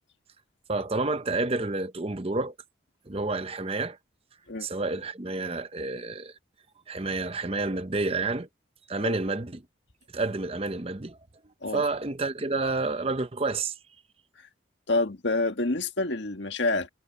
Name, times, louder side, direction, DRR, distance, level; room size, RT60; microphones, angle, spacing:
voice 1, 0.7-2.5 3.1-4.0 4.6-6.3 6.9-8.5 8.9-9.6 10.1-11.2 11.7-13.7, right 3 dB, 30° right, 0.8 m, -29 dB
voice 2, 14.9-16.9, left 2 dB, 65° left, 1.7 m, -27 dB
head